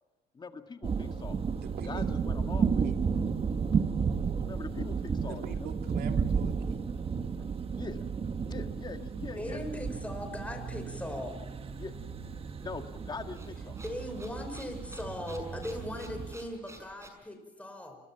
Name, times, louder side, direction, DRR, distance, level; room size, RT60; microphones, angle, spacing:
voice 1, 0.3-1.4 1.8-2.9 4.4-5.7 7.7-8.1 8.4-9.6 11.8-11.9 12.6-13.8, left 4 dB, 25° left, 6 dB, 1.9 m, -42 dB
sound 1, 0.8-16.4, right 6 dB, 35° right, 1.4 m, -33 dB
voice 2, 1.6-2.0 2.8-2.9 5.3-6.9, right 8 dB, 65° right, 4 dB, 3.0 m, -44 dB
voice 3, 9.4-11.4 13.8-18.0, left 1 dB, 10° left, 5 dB, 5.4 m, -39 dB
sound 2, 12.6-17.1, right 2 dB, 15° right, 6.1 m, -52 dB
28.5 x 22.5 x 6.0 m, 1.1 s
cardioid pair, 110°, 17 cm